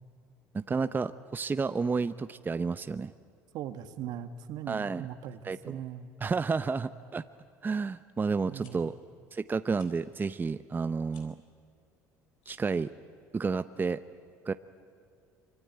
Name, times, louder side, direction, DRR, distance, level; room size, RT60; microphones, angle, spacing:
voice 1, 0.5-3.1 4.7-5.1 5.4-5.8 6.2-7.2 7.6-8.9 9.3-11.4 12.5-12.9 13.3-14.0 14.5-14.6, right 4 dB, 25° right, 11 dB, 0.7 m, -31 dB
voice 2, 3.5-6.1 8.5-8.8, right 10 dB, 65° right, 9 dB, 1.7 m, -39 dB
sound 1, 8.6-8.7 9.7-9.9 11.1-11.3 12.4-12.8, left 7 dB, 80° left, 4.0 m, -58 dB
25.0 x 24.5 x 9.4 m, 2.5 s
hypercardioid pair, 75°, 8 cm